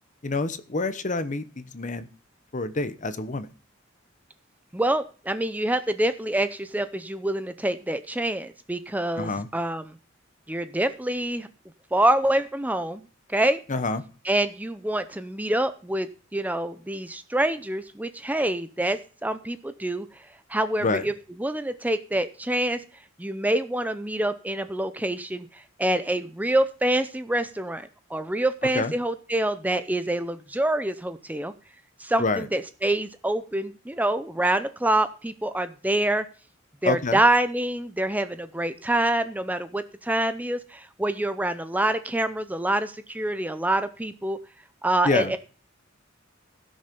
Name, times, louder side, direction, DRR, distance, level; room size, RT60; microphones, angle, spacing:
voice 1, 0.2-2.1 2.5-3.5 9.2-9.5 13.7-14.0 20.8-21.1 28.7-28.9 32.2-32.5 36.8-37.2 45.0-45.3, left 3 dB, 40° left, 12 dB, 1.0 m, -27 dB
voice 2, 4.7-9.8 10.5-11.5 11.9-13.0 13.3-13.6 14.2-20.1 20.5-21.1 21.4-22.8 23.2-31.5 32.0-36.3 36.8-44.4 44.8-45.4, right 1 dB, 10° right, 11 dB, 0.5 m, -26 dB
16.0 x 6.5 x 5.3 m, 0.38 s
head